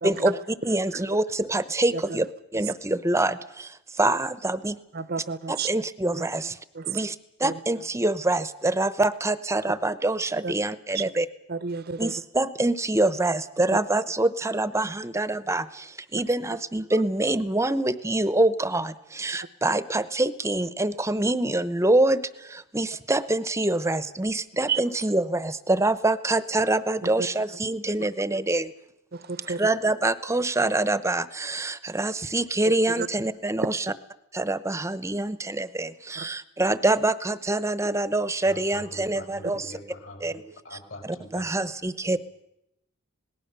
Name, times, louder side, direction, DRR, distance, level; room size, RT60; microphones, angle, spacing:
voice 1, 0.0-2.3 2.5-4.8 5.5-6.6 6.9-11.3 12.0-28.7 29.5-33.9 34.3-39.7 40.2-40.3 40.7-42.2, right 2 dB, 15° right, 15 dB, 0.8 m, -25 dB
voice 2, 4.9-5.7 6.1-6.2 6.8-6.9 7.4-7.5 10.4-10.5 10.9-11.0 11.5-12.1 24.7-24.8 29.3-29.6 33.0-33.1 36.2-36.3, right 5 dB, 50° right, 17 dB, 0.8 m, -30 dB
voice 3, 38.4-41.5 42.0-42.2, left 1 dB, 65° left, 3 dB, 6.7 m, -43 dB
27.0 x 19.0 x 6.8 m, 0.83 s
head